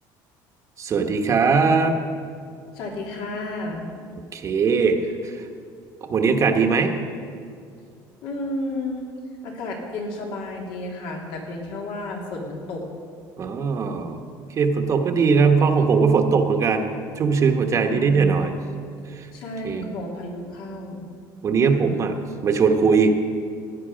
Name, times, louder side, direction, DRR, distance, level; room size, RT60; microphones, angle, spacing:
voice 1, 0.8-2.0 4.3-5.4 6.1-6.9 13.4-14.2 14.6-16.9 17.2-18.5 19.1-19.3 19.6-19.8 21.4-22.1 22.4-23.1, right 5 dB, 35° right, 4 dB, 1.1 m, -20 dB
voice 2, 2.7-3.9 8.2-9.2 9.4-12.8 17.9-18.5 19.3-21.0, left 2 dB, 75° left, -1 dB, 2.7 m, -32 dB
16.5 x 9.7 x 5.1 m, 2.3 s
cardioid pair, 125°, 9 cm